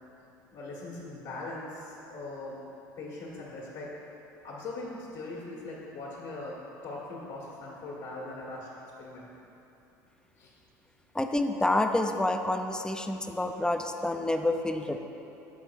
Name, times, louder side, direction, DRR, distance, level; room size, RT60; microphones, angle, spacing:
voice 1, 0.5-2.6 3.0-3.9 4.4-6.6 6.8-8.7 9.0-9.3 10.4-10.5, left 2 dB, 60° left, -5 dB, 1.4 m, -40 dB
voice 2, 11.2-15.0, left 1 dB, 10° left, 6 dB, 0.4 m, -28 dB
7.1 x 4.6 x 4.6 m, 2.9 s
hypercardioid pair, 80°, 9 cm